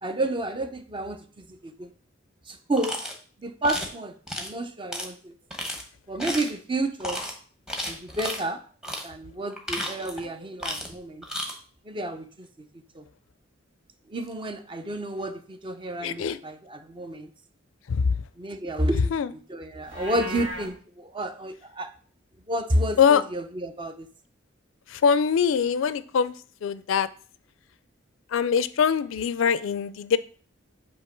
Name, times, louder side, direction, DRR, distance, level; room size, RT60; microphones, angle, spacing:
voice 1, 0.0-1.9 2.5-3.0 3.4-5.3 6.1-7.2 7.9-8.6 9.0-11.2 11.9-12.5 13.0-13.1 14.1-17.3 18.4-19.1 19.5-21.9 22.5-24.1, right 1 dB, 25° right, 8 dB, 0.5 m, -30 dB
sound 1, 2.8-3.2 3.6-3.9 4.3-4.5 4.9-5.1 5.5-5.8 6.2-6.6 7.0-7.3 7.7-8.4 8.8-9.1 9.5-10.3 10.6-11.0 11.2-11.5, left 1 dB, 5° right, 0.9 m, -33 dB
voice 2, 16.0-16.4 17.9-18.1 19.1-19.3 23.0-23.2 24.9-26.3 26.6-27.1 28.3-30.2, left 6 dB, 80° left, 15 dB, 0.4 m, -23 dB
Livestock farm animals working animals, 19.8-20.7, right 1 dB, 70° right, 1.8 m, -36 dB
7.7 x 2.9 x 4.5 m, 0.43 s
head